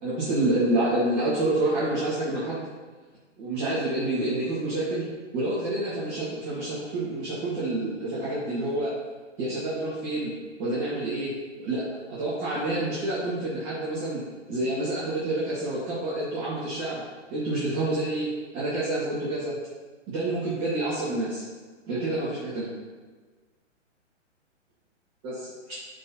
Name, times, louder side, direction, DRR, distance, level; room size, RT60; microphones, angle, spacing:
voice 1, 0.0-2.6 3.4-5.1 5.3-8.9 9.4-10.3 10.6-11.3 11.6-11.8 12.1-14.2 14.5-17.0 17.3-19.6 20.1-21.4 21.9-22.7 25.2-25.7, right 2 dB, 30° right, -10 dB, 2.3 m, -28 dB
11.5 x 4.4 x 3.0 m, 1.4 s
hypercardioid pair, 145°, 37 cm